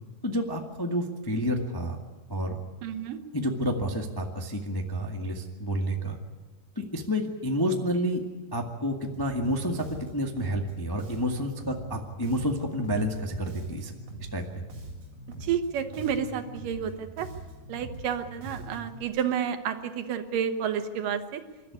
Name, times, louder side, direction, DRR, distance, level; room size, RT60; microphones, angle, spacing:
voice 1, 0.2-2.0 2.3-2.6 3.3-6.2 6.7-8.2 8.5-9.8 10.1-13.9 14.3-14.5, equal, 15° left, 2 dB, 0.7 m, -29 dB
voice 2, 2.8-3.2 15.4-17.3 17.7-21.4, right 8 dB, 90° right, 8 dB, 2.9 m, -30 dB
Bass guitar, 9.1-19.0, right 1 dB, 50° right, 4.9 m, -43 dB
28.0 x 12.5 x 9.6 m, 1.3 s
omnidirectional pair, 3.7 m